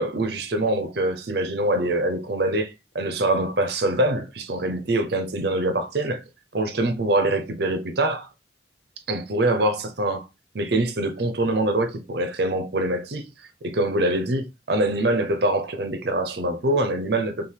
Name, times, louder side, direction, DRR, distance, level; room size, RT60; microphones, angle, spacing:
voice 1, 0.0-6.2 6.5-8.3 9.1-10.3 10.5-13.3 13.6-17.5, right 1 dB, 55° right, 0.6 m, -24 dB
5.6 x 2.4 x 3.3 m
head